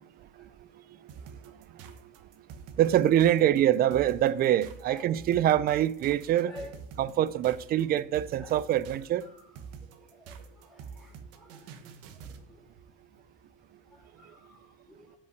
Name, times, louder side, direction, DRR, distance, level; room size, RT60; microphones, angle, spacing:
sound 1, 1.1-12.5, right 6 dB, 55° right, 1.2 m, -46 dB
voice 1, 2.8-6.5 7.0-9.3, right 11 dB, 30° right, 0.4 m, -25 dB
voice 2, 4.8-5.4 6.4-6.8 8.4-8.9 9.3-9.4 10.0-11.7 12.3-12.6 13.9-15.0, equal, ahead, 3.0 m, -50 dB
8.4 x 5.4 x 7.8 m
supercardioid pair, 135°, 30 cm